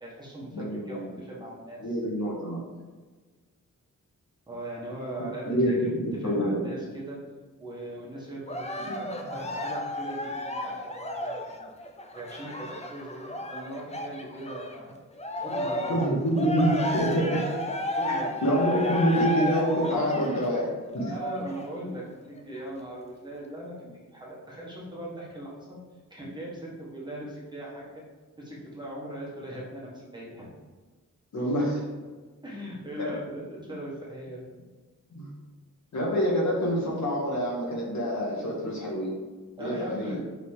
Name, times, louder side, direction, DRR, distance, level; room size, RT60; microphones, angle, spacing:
voice 1, 0.0-1.9 4.5-5.8 6.1-7.2 7.6-10.3 10.6-11.7 12.1-14.9 15.4-16.0 18.0-18.4 21.1-25.8 26.1-28.0 28.4-30.5 32.4-34.5 39.6-40.2, right 1 dB, 15° right, -6 dB, 1.6 m, -39 dB
voice 2, 0.5-1.2 1.8-2.6 5.5-6.6 8.8-9.1 15.9-17.4 18.1-21.1 31.3-31.8 33.0-33.1 35.1-35.3 35.9-39.1 39.6-40.2, equal, 60° left, -3 dB, 1.8 m, -27 dB
Cheering, 8.5-14.8 15.2-21.8 22.4-22.5, left 1 dB, 20° left, 0.6 m, -33 dB
5.6 x 4.0 x 4.9 m, 1.3 s
wide cardioid pair, 175°, 32 cm